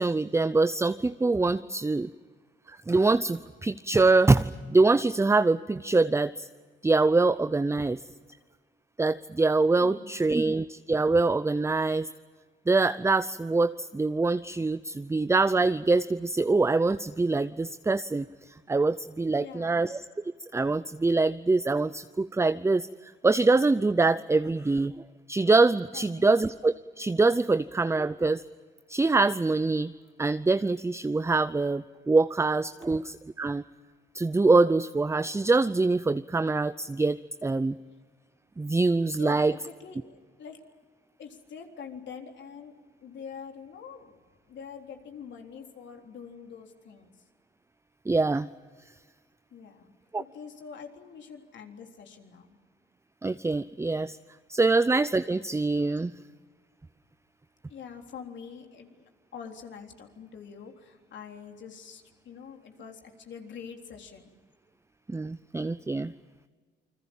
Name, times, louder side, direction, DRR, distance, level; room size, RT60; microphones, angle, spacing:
voice 1, 0.0-2.1 2.7-6.5 6.8-8.0 9.0-12.1 12.7-18.2 18.7-20.0 20.5-24.9 25.3-28.4 28.9-29.9 30.2-33.6 34.1-37.8 38.6-39.5 48.1-48.5 50.1-50.2 53.2-54.2 54.5-56.1 65.1-66.1, right 3 dB, 15° right, 13 dB, 0.6 m, -24 dB
voice 2, 9.8-10.4 19.3-19.8 25.9-26.4 39.2-40.6 41.2-42.7 43.0-44.2 44.5-47.3 49.5-49.9 50.2-52.6 57.7-64.3, left 6 dB, 65° left, 3 dB, 3.7 m, -45 dB
28.5 x 21.5 x 7.2 m, 1.5 s
cardioid pair, 90°, 20 cm